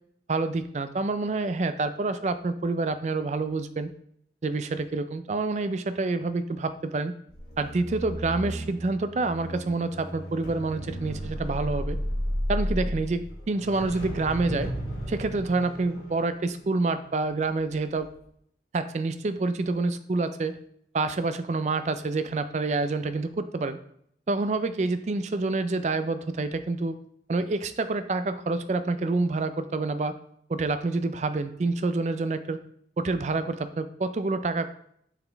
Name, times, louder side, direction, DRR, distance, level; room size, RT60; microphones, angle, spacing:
voice 1, 0.3-3.9 4.4-7.1 7.6-12.0 12.5-14.7 15.1-18.1 18.7-20.6 20.9-23.8 24.3-27.0 27.3-30.1 30.5-32.6 33.0-34.7, right 3 dB, 40° right, 11 dB, 0.3 m, -27 dB
sound 1, 7.3-17.6 18.0-18.2, equal, 60° left, 1.7 m, -34 dB
7.0 x 4.0 x 3.4 m, 0.69 s
head